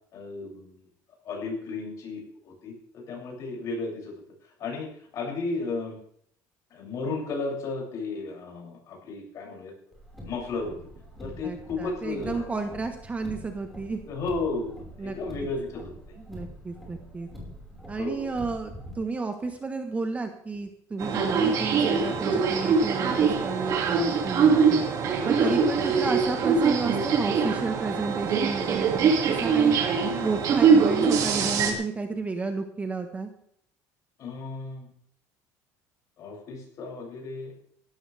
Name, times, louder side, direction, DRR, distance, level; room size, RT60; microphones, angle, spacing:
voice 1, 0.1-0.8 1.2-4.1 4.6-4.9 5.1-6.0 6.7-9.7 10.2-10.7 11.2-12.6 14.1-16.2 18.0-18.3 21.5-21.7 24.8-25.0 25.4-25.7 34.2-34.9 36.2-37.5, left 3 dB, 50° left, -2 dB, 7.3 m, -34 dB
Car, 9.9-18.9, equal, ahead, 5.2 m, -44 dB
voice 2, 11.4-14.0 15.0-15.5 16.3-17.3 17.9-24.8 25.2-29.8 30.2-33.3, right 3 dB, 20° right, 6 dB, 1.5 m, -32 dB
sound 1, 21.0-31.7, right 5 dB, 50° right, 2.6 m, -23 dB
16.5 x 13.5 x 3.5 m, 0.66 s
cardioid pair, 130°, 7 cm